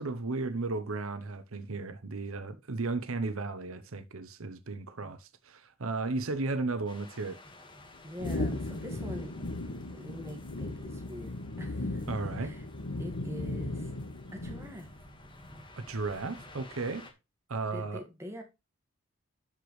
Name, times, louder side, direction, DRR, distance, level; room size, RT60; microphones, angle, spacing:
voice 1, 0.0-7.4 12.1-12.5 15.8-17.1 17.5-18.0, right 3 dB, 80° right, 0.9 m, -34 dB
sound 1, 6.9-17.1, left 1 dB, 20° left, 1.7 m, -52 dB
voice 2, 8.0-9.3 9.9-12.1 12.4-12.7 13.0-13.9 14.3-14.9 17.7-18.4, equal, 10° right, 1.9 m, -44 dB
sound 2, 8.2-15.0, left 2 dB, 90° left, 1.3 m, -37 dB
12.5 x 5.1 x 3.2 m
head